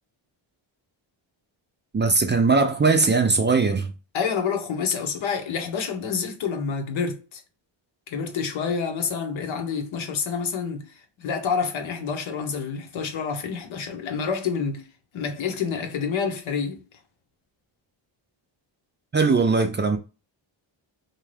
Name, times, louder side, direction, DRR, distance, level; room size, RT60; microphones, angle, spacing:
voice 1, 1.9-3.9 19.1-20.0, right 4 dB, 25° right, 0.5 m, -20 dB
voice 2, 4.1-7.4 8.1-14.9 15.1-16.8, left 6 dB, 75° left, 0.9 m, -28 dB
2.6 x 2.4 x 3.2 m
cardioid pair, 70°, 47 cm